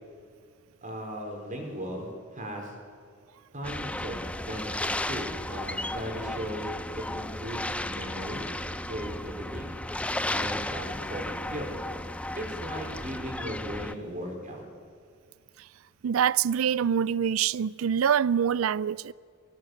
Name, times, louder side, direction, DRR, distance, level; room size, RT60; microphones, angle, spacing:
voice 1, 0.8-2.7 3.5-6.6 7.0-8.5 8.9-9.8 10.3-11.7 12.4-14.6, equal, 40° right, 4.5 m, -37 dB
sound 1, 3.6-13.9, left 1 dB, 5° left, 0.6 m, -34 dB
voice 2, 16.0-19.1, right 8 dB, 80° right, 0.4 m, -25 dB
20.5 x 17.0 x 7.9 m
head